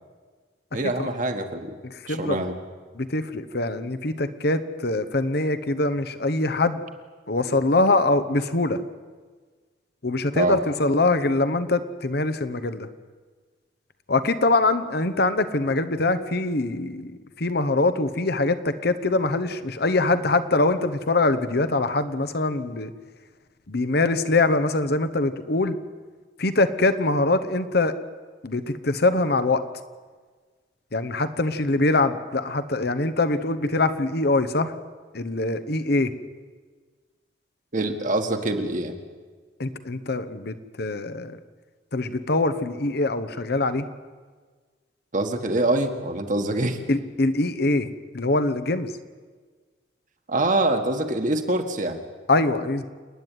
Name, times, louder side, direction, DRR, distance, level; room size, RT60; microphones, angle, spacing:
voice 1, 0.7-1.8 2.1-2.5 10.3-10.6 37.7-39.0 45.1-46.8 50.3-52.0, right 2 dB, 45° right, 5 dB, 1.7 m, -25 dB
voice 2, 1.8-2.4 2.9-6.8 7.3-8.8 10.0-12.9 14.1-17.1 17.4-22.9 23.7-25.8 26.4-27.9 28.4-29.6 30.9-34.7 35.1-36.1 39.6-41.4 41.9-43.9 46.9-47.9 48.1-48.9 52.3-52.9, left 2 dB, 60° left, 11 dB, 1.1 m, -23 dB
29.0 x 9.9 x 9.3 m, 1.5 s
head